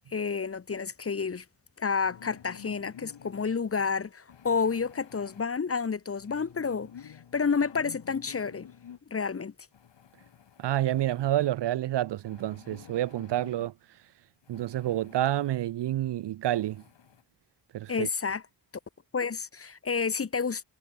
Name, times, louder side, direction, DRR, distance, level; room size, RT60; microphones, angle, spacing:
voice 1, 0.1-1.4 1.8-8.7 9.1-9.5 17.9-18.4 19.1-20.6, left 5 dB, 30° left, 0.9 m, -30 dB
sound 1, 2.0-3.6 4.3-5.4 6.2-9.0 9.7-11.5 12.2-13.7 14.4-15.6 16.0-16.1 16.4-17.2, left 8 dB, 80° left, 3.8 m, -51 dB
voice 2, 10.6-13.7 14.5-16.8 17.7-18.1, right 13 dB, 70° right, 0.6 m, -28 dB
cardioid pair, 55°, 44 cm